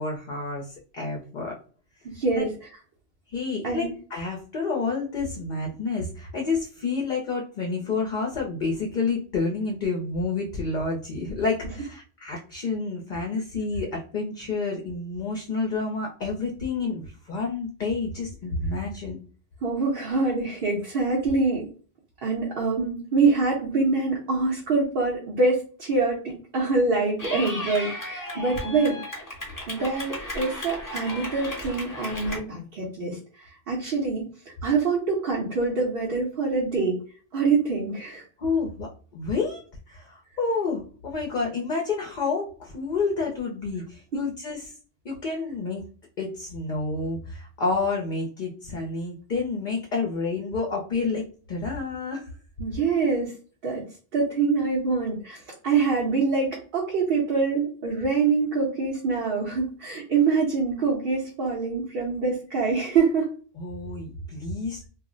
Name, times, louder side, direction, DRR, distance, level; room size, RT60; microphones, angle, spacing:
voice 1, 0.0-1.6 2.3-2.5 3.3-19.2 28.3-28.4 38.4-44.7 45.0-45.8 46.2-52.3 63.6-64.9, left 4 dB, 55° left, 0 dB, 0.7 m, -29 dB
voice 2, 2.1-2.5 3.6-3.9 19.6-21.7 22.2-29.2 29.7-34.3 34.6-37.0 37.3-38.2 52.6-53.3 53.6-53.8 54.1-63.3, right 4 dB, 60° right, -2 dB, 0.9 m, -25 dB
Clapping / Cheering, 27.2-32.4, left 1 dB, 20° left, 0.8 m, -35 dB
2.4 x 2.0 x 3.7 m, 0.41 s
omnidirectional pair, 1.1 m